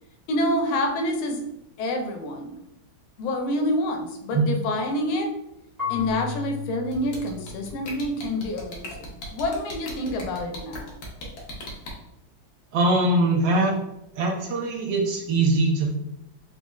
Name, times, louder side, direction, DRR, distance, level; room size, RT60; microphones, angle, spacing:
voice 1, 0.3-1.4 1.8-2.6 3.2-5.3 5.9-10.9, left 1 dB, 85° left, 3 dB, 1.5 m, -27 dB
Marimba xylophone / Wood, 5.8-8.6, left 7 dB, 20° right, 0.6 m, -35 dB
sound 1, 6.9-11.9, left 1 dB, 65° left, 1.4 m, -37 dB
voice 2, 12.7-13.7 14.1-15.9, right 2 dB, 70° right, 0 dB, 1.3 m, -22 dB
4.2 x 2.8 x 2.3 m, 0.85 s
omnidirectional pair, 2.2 m